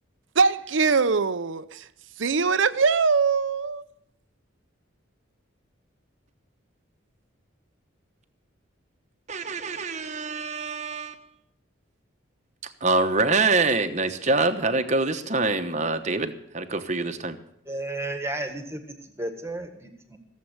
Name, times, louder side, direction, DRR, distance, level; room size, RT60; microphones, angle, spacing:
voice 1, 0.3-1.9 2.2-3.9, right 5 dB, 65° right, 14 dB, 0.7 m, -22 dB
voice 2, 9.3-11.1 12.8-17.4, right 3 dB, 35° right, 8 dB, 1.1 m, -25 dB
voice 3, 17.6-20.2, right 2 dB, 15° right, 6 dB, 1.7 m, -33 dB
16.5 x 7.7 x 9.2 m, 0.74 s
head